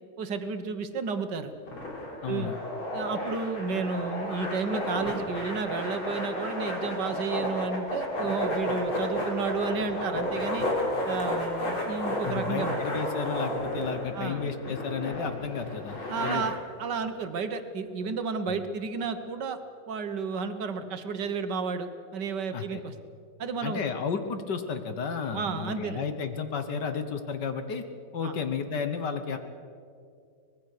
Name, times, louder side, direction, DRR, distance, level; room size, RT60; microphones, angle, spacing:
voice 1, 0.2-1.5 2.3-2.5 2.9-10.7 11.1-12.8 14.1-14.4 16.1-19.6 19.9-22.9 23.4-23.8 25.3-26.0 28.2-28.3, right 5 dB, 60° right, 9 dB, 1.8 m, -32 dB
sound 1, 1.7-16.4, left 1 dB, 85° left, 4.8 m, -32 dB
voice 2, 2.2-2.6 12.2-16.5 18.5-18.6 22.5-22.8 23.6-27.8 28.1-29.4, left 6 dB, 60° left, 8 dB, 1.8 m, -32 dB
24.5 x 20.0 x 6.7 m, 2.4 s
omnidirectional pair, 2.2 m